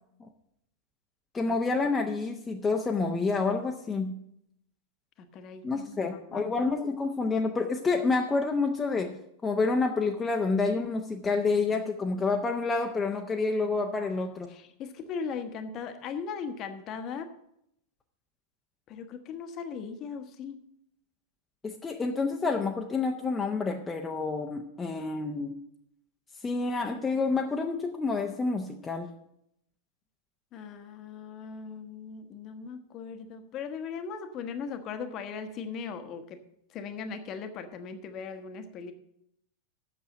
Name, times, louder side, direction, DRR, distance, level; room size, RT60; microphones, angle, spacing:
voice 1, 1.3-4.2 5.6-14.5 21.6-25.6 26.4-29.1, left 4 dB, 15° left, 2 dB, 0.8 m, -28 dB
voice 2, 5.3-6.6 14.5-17.3 18.9-20.6 30.5-36.4 36.7-38.9, left 6 dB, 35° left, 8 dB, 1.1 m, -38 dB
8.4 x 6.8 x 7.6 m, 0.76 s
figure-of-eight pair, 90°, 0 cm